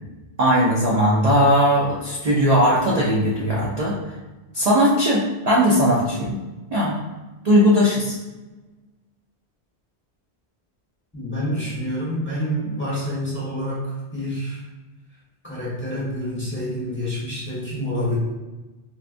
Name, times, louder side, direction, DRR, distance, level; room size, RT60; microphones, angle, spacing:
voice 1, 0.4-3.9 4.5-6.3 6.7-7.0 7.4-8.2, equal, 45° right, -5 dB, 0.6 m, -18 dB
voice 2, 11.1-13.8 14.1-14.6 15.4-18.2, equal, 10° left, -8 dB, 1.1 m, -27 dB
4.1 x 2.3 x 2.5 m, 1.2 s
omnidirectional pair, 1.1 m